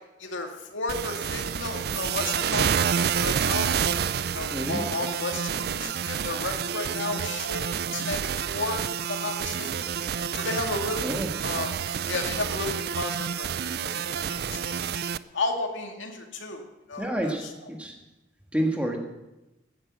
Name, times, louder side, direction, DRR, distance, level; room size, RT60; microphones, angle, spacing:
voice 1, 0.2-3.7 4.2-9.9 10.3-11.8 12.1-13.5 13.8-14.9 15.3-16.6 16.9-17.4, left 2 dB, 85° left, 3 dB, 2.2 m, -33 dB
sound 1, 0.9-15.2, right 7 dB, 55° right, 0.4 m, -29 dB
voice 2, 4.5-5.0 11.0-11.3 17.0-18.0 18.5-19.0, right 1 dB, 5° right, 2 dB, 1.5 m, -29 dB
16.0 x 10.0 x 6.2 m, 0.98 s
head